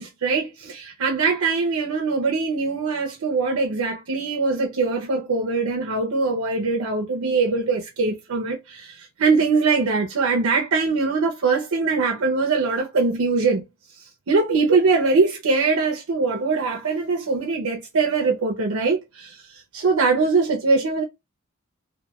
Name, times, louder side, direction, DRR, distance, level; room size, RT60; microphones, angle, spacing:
voice 1, 0.0-13.6 13.9-21.0, right 4 dB, 85° right, 0.6 m, -22 dB
2.9 x 2.3 x 2.3 m
head